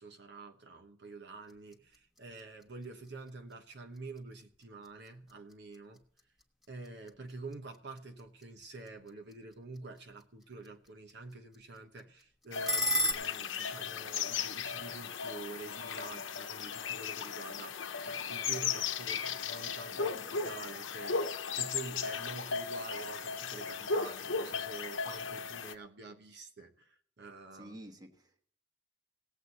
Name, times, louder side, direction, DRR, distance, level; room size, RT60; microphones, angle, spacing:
voice 1, 0.0-6.0 6.7-27.8, right 3 dB, 60° right, 1.1 m, -48 dB
sound 1, 1.3-13.1, left 1 dB, ahead, 1.2 m, -41 dB
sound 2, 12.5-25.7, left 5 dB, 75° left, 0.8 m, -36 dB
voice 2, 19.9-20.7 27.5-28.4, right 1 dB, 20° right, 1.3 m, -51 dB
18.0 x 8.0 x 4.1 m
head